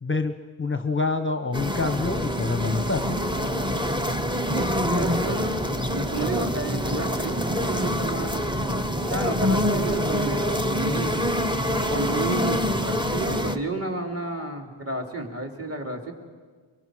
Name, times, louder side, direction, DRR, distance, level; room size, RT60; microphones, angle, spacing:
voice 1, 0.0-3.2, left 3 dB, 25° left, 9 dB, 0.7 m, -27 dB
sound 1, 1.5-13.6, equal, 10° right, 0.9 m, -25 dB
voice 2, 4.5-8.3 9.0-11.3 11.9-16.1, right 2 dB, 30° right, 1 dB, 2.7 m, -32 dB
23.5 x 23.5 x 6.2 m, 1.5 s
wide cardioid pair, 145°, 46 cm